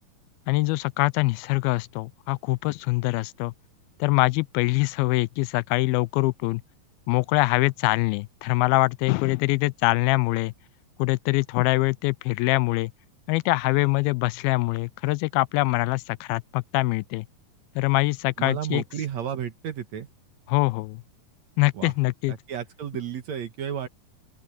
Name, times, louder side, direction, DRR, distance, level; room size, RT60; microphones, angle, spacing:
voice 1, 0.5-3.5 4.0-6.6 7.1-10.5 11.0-12.9 13.3-17.3 17.8-18.8 20.5-21.0 21.6-22.3, left 22 dB, 90° left, 2.4 m, -24 dB
voice 2, 18.4-20.1 21.7-21.9 22.3-23.9, right 9 dB, 60° right, 2.3 m, -32 dB
open air
omnidirectional pair, 4.2 m